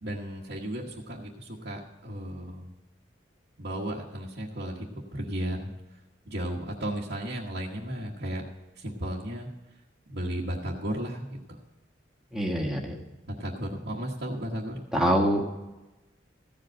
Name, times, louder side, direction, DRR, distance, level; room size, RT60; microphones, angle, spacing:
voice 1, 0.0-2.7 3.6-5.7 6.2-8.4 8.7-9.5 10.1-11.6 13.4-14.8, right 1 dB, 60° right, -5 dB, 1.2 m, -34 dB
voice 2, 12.3-12.9 14.9-15.5, equal, 5° right, -1 dB, 1.5 m, -25 dB
15.0 x 5.2 x 8.7 m, 1.1 s
head